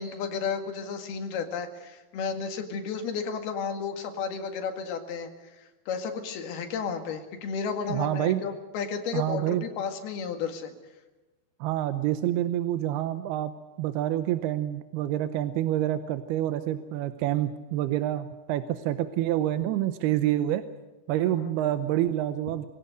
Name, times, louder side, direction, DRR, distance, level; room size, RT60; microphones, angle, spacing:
voice 1, 0.0-10.7 21.3-21.6, left 6 dB, 80° left, 6 dB, 4.0 m, -33 dB
voice 2, 7.9-8.4 9.1-9.6 11.6-13.5 13.8-20.6 21.1-22.7, right 13 dB, 90° right, 11 dB, 2.8 m, -27 dB
23.5 x 17.0 x 8.1 m, 1.1 s
omnidirectional pair, 4.4 m